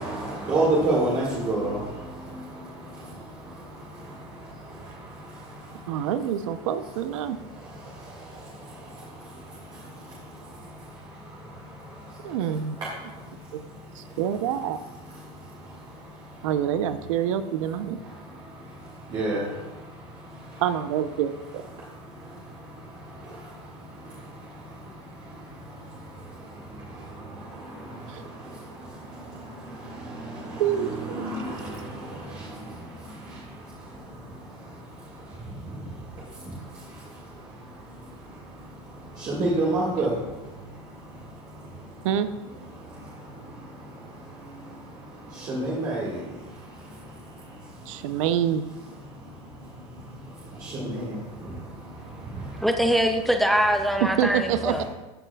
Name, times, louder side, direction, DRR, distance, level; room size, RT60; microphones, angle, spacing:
voice 1, 0.0-6.1 6.4-20.6 21.7-42.1 42.6-48.2 48.8-52.7 54.7-54.8, right 2 dB, 25° right, -5 dB, 1.8 m, -35 dB
voice 2, 5.9-7.4 12.2-12.8 13.5-13.6 14.0-14.8 16.4-18.0 20.6-21.6 28.1-28.2 30.6-31.3 42.0-42.3 47.9-48.7 54.0-54.8, right 9 dB, 80° right, 12 dB, 0.7 m, -26 dB
voice 3, 52.6-54.8, equal, ahead, 5 dB, 0.4 m, -23 dB
14.0 x 7.4 x 2.3 m, 1.1 s
supercardioid pair, 165°, 16 cm